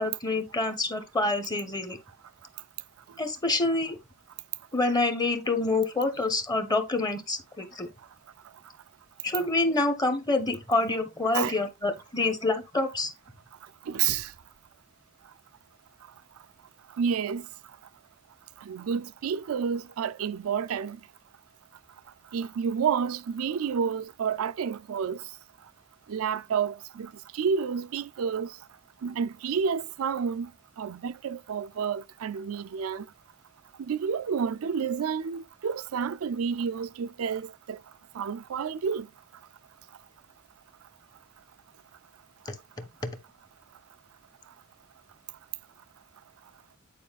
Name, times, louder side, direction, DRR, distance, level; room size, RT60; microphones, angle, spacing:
voice 1, 0.0-2.0 3.2-4.0 4.7-7.9 9.2-13.1, left 2 dB, 20° left, 1.0 m, -27 dB
voice 2, 13.9-14.3 17.0-17.5 18.6-21.0 22.3-25.2 26.1-28.5 29.0-30.5 30.8-33.1 33.8-37.8 38.1-39.1, right 6 dB, 70° right, 0.4 m, -30 dB
9.3 x 4.7 x 2.3 m
head